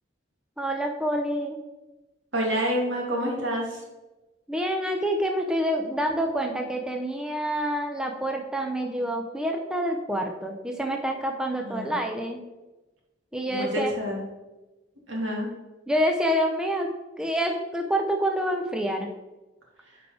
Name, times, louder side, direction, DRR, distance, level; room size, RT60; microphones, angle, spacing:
voice 1, 0.6-1.6 4.5-12.4 13.3-13.9 15.9-16.9 17.2-19.1, equal, 5° right, 2 dB, 0.5 m, -27 dB
voice 2, 2.3-3.8 11.6-11.9 13.5-14.2 15.1-15.5, equal, 75° right, -2 dB, 2.4 m, -28 dB
9.7 x 4.9 x 3.8 m, 1.1 s
head